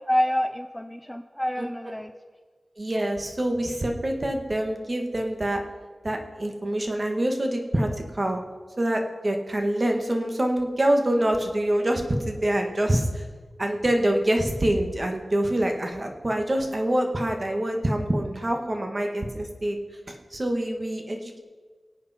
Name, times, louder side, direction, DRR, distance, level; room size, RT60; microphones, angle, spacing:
voice 1, 0.1-2.1, equal, 5° left, 8 dB, 0.5 m, -27 dB
voice 2, 2.8-5.6 6.0-7.9 8.1-8.4 8.8-13.2 13.6-19.8 20.1-21.4, right 1 dB, 35° right, 3 dB, 1.8 m, -25 dB
24.5 x 8.6 x 4.5 m, 1.5 s
wide cardioid pair, 85°, 0 cm